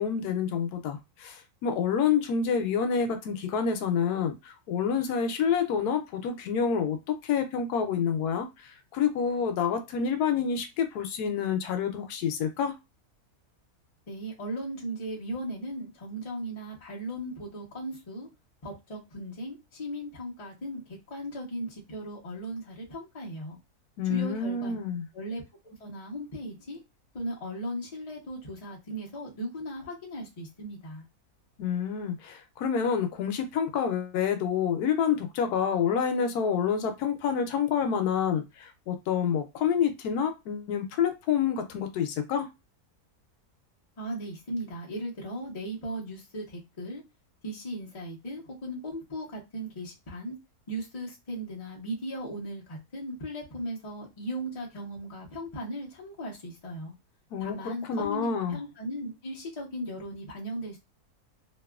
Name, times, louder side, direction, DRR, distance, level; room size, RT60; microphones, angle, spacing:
voice 1, 0.0-7.0 7.2-12.7 24.0-25.1 31.6-42.5 57.3-58.6, left 7 dB, 85° left, 1.1 m, -28 dB
voice 2, 14.1-18.3 18.6-20.8 21.1-23.6 24.0-24.8 25.1-26.8 27.1-31.0 44.0-47.0 47.4-50.4 50.7-56.9 57.4-60.8, equal, 30° left, 0.8 m, -37 dB
2.9 x 2.3 x 2.3 m
omnidirectional pair, 1.6 m